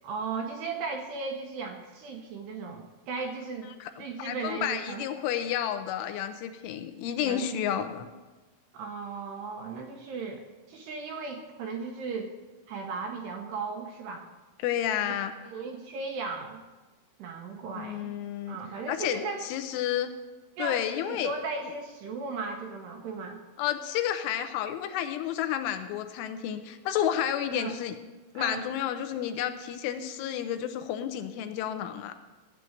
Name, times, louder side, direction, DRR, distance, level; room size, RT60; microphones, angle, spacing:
voice 1, 0.0-3.7 4.0-5.0 7.2-7.8 8.7-12.4 12.7-14.3 15.4-16.6 17.2-18.1 18.5-19.5 20.6-23.4 27.5-27.8 28.4-28.6, right 4 dB, 70° right, 2 dB, 2.7 m, -36 dB
voice 2, 3.8-8.0 14.6-15.3 17.8-18.6 18.9-20.1 20.6-21.3 23.6-27.9 28.3-32.1, left 10 dB, 85° left, 8 dB, 3.2 m, -31 dB
15.0 x 9.2 x 6.5 m, 1.2 s
omnidirectional pair, 5.7 m